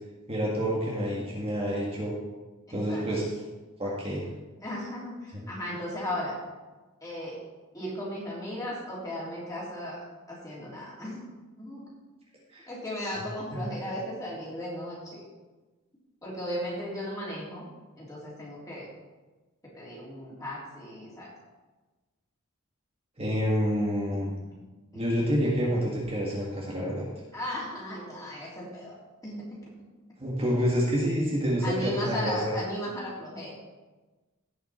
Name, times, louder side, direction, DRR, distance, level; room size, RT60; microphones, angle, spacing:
voice 1, 0.3-2.1 2.7-3.3 3.8-4.2 12.5-12.6 23.2-24.3 24.9-27.0 30.2-32.5, equal, 25° right, -4 dB, 1.8 m, -28 dB
voice 2, 2.7-3.0 4.6-6.3 7.0-7.4 7.7-10.0 10.3-11.3 11.6-11.8 12.7-15.2 16.2-17.7 18.0-18.9 19.7-21.3 24.9-25.1 27.3-28.9 29.2-29.9 31.6-33.5, left 1 dB, 15° left, -6 dB, 3.4 m, -36 dB
17.0 x 5.9 x 4.3 m, 1.2 s
head